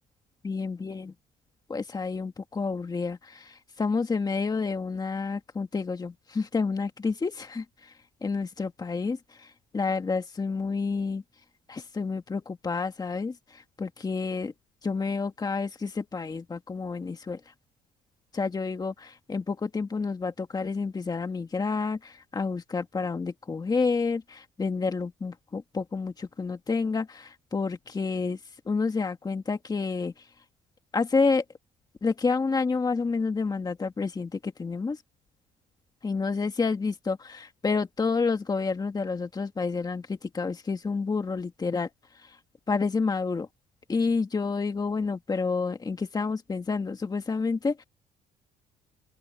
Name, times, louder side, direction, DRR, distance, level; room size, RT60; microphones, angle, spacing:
voice 1, 0.4-1.1 1.7-7.9 8.2-11.2 11.7-14.5 14.8-17.4 18.3-28.4 28.7-30.2 30.9-31.4 32.0-35.0 36.0-41.9 42.2-42.4 42.7-43.5 43.9-47.8, left 4 dB, 25° left, 1.9 m, -29 dB
open air
cardioid pair, 110°, 17 cm